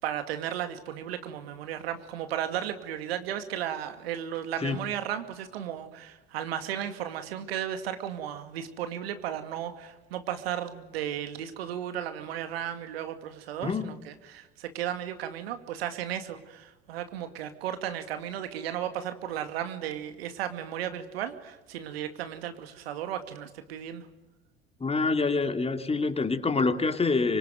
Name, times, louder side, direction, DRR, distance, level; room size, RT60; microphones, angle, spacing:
voice 1, 0.0-24.1, right 10 dB, 70° right, 9 dB, 2.4 m, -35 dB
voice 2, 13.6-13.9 24.8-27.4, left 4 dB, 20° left, 7 dB, 2.9 m, -26 dB
26.0 x 24.0 x 9.3 m, 1.1 s
figure-of-eight pair, 65°, 31 cm